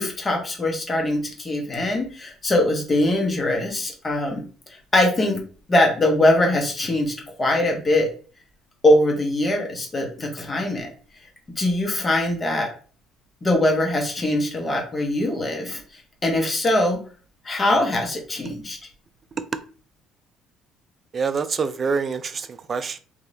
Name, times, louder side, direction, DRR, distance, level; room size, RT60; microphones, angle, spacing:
voice 1, 0.0-4.4 4.9-5.4 5.7-8.1 8.8-10.9 11.6-12.7 13.4-17.0 17.4-18.8, left 1 dB, 30° left, 1.2 m, -22 dB
voice 2, 21.1-23.0, right 5 dB, 40° right, 0.3 m, -26 dB
3.0 x 2.7 x 2.7 m
supercardioid pair, 75°, 0 cm